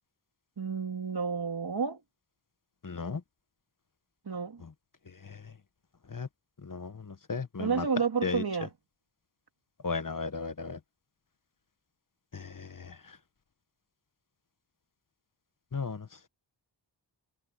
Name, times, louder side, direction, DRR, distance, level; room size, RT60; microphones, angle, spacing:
voice 1, 0.6-2.0 4.3-4.6 7.6-8.7, right 5 dB, 55° right, 2.0 m, -30 dB
voice 2, 2.8-3.2 4.6-4.7 5.2-5.5 6.1-6.3 6.6-7.8 8.2-8.4 9.8-10.8 12.3-13.2 15.7-16.1, left 4 dB, 45° left, 1.2 m, -36 dB
wide cardioid pair, 50°, 46 cm